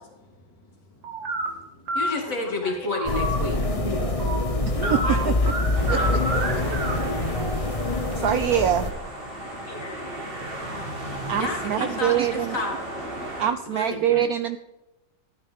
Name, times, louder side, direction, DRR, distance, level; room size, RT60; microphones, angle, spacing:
voice 1, 0.2-2.9 4.0-5.8 9.3-11.4, left 3 dB, 65° left, 0 dB, 2.9 m, -42 dB
sound 1, 1.0-1.5 1.9-2.1 2.7-7.9, right 2 dB, 90° right, 2.6 m, -30 dB
voice 2, 1.9-3.6 5.9-6.2 11.0-12.8 13.6-14.3, left 2 dB, 45° left, 1 dB, 2.7 m, -31 dB
sound 2, 3.1-8.9, left 2 dB, 30° left, 0.7 m, -25 dB
sound 3, 5.7-13.5, right 1 dB, 30° right, 2.1 m, -35 dB
voice 3, 8.2-8.9 11.3-12.5 13.4-14.6, right 10 dB, 70° right, 11 dB, 0.9 m, -23 dB
13.0 x 9.5 x 3.5 m, 1.0 s
omnidirectional pair, 2.0 m